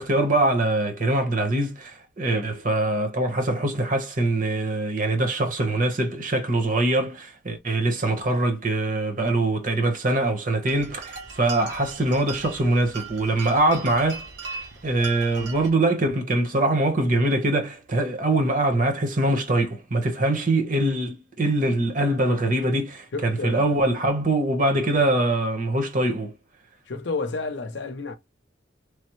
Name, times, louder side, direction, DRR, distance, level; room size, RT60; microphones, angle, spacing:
voice 1, 0.0-14.2 14.8-26.3, right 2 dB, 45° right, 1.0 m, -23 dB
sound 1, 10.6-15.7, right 5 dB, 70° right, 1.0 m, -39 dB
voice 2, 23.1-23.8 26.9-28.1, left 3 dB, 65° left, 0.6 m, -30 dB
3.3 x 2.1 x 3.0 m
head